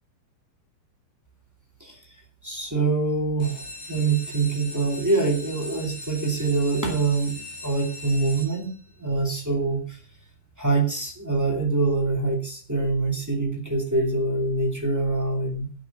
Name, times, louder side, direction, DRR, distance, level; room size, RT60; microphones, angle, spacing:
voice 1, 2.4-8.7 9.0-10.0 10.6-15.7, right 3 dB, 15° right, 1 dB, 0.6 m, -25 dB
sound 1, 3.3-9.0 9.6-10.1 10.5-10.6 10.9-11.0 11.4-11.5, left 1 dB, 60° left, 7.2 m, -40 dB
17.5 x 5.9 x 6.9 m, 0.39 s
omnidirectional pair, 5.5 m